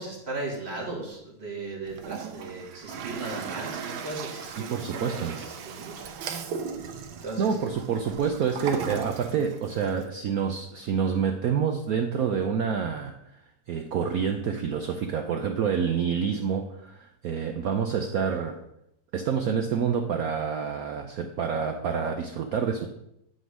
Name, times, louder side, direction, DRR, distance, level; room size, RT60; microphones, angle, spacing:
voice 1, 0.0-6.0 6.7-6.8 7.2-7.5, right 2 dB, 30° right, -2 dB, 2.2 m, -37 dB
Toilet flush, 1.9-10.0, right 6 dB, 85° right, 1.6 m, -38 dB
voice 2, 4.6-5.4 7.4-13.4 13.7-18.6 19.1-22.9, right 6 dB, 70° right, 5 dB, 0.9 m, -28 dB
10.0 x 3.8 x 6.2 m, 0.80 s
omnidirectional pair, 2.2 m